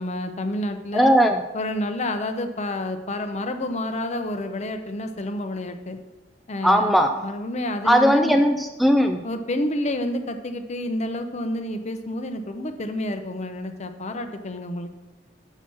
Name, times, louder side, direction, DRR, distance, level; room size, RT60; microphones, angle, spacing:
voice 1, 0.0-1.1 1.5-6.0 6.5-8.4 9.2-15.0, left 1 dB, 40° left, 7 dB, 0.7 m, -29 dB
voice 2, 0.9-1.4 6.6-7.1 7.8-9.2, equal, ahead, 5 dB, 0.3 m, -18 dB
6.2 x 5.7 x 5.9 m, 1.0 s
head